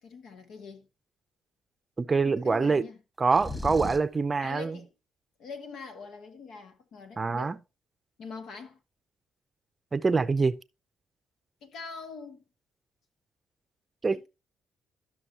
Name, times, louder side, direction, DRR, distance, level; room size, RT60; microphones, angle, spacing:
voice 1, 0.0-0.9 2.2-3.0 4.4-4.9 5.4-7.6 8.2-8.8 11.6-12.4 14.1-14.3, left 5 dB, 75° left, 1.8 m, -44 dB
voice 2, 2.0-2.8 3.2-4.8 7.2-7.6 9.9-10.5 14.0-14.3, right 4 dB, 30° right, 0.6 m, -25 dB
sound 1, 3.3-4.2, left 2 dB, 5° left, 1.5 m, -35 dB
12.5 x 6.2 x 2.8 m
cardioid pair, 90°, 0 cm